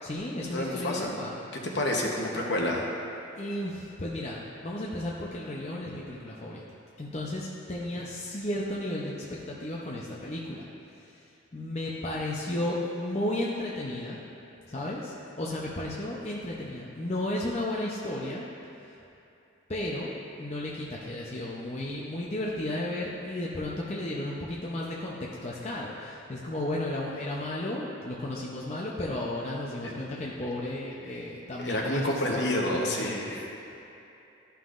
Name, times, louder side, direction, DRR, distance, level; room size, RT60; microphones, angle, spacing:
voice 1, 0.0-1.4 3.4-6.6 7.0-10.6 10.9-14.2 14.7-18.5 18.8-19.0 19.7-33.2 33.6-33.8, left 1 dB, 35° left, -5 dB, 0.6 m, -34 dB
voice 2, 0.5-1.2 1.7-2.8 29.8-29.9 31.6-33.4, left 1 dB, 60° left, -1 dB, 0.9 m, -29 dB
13.0 x 5.7 x 2.5 m, 2.8 s
head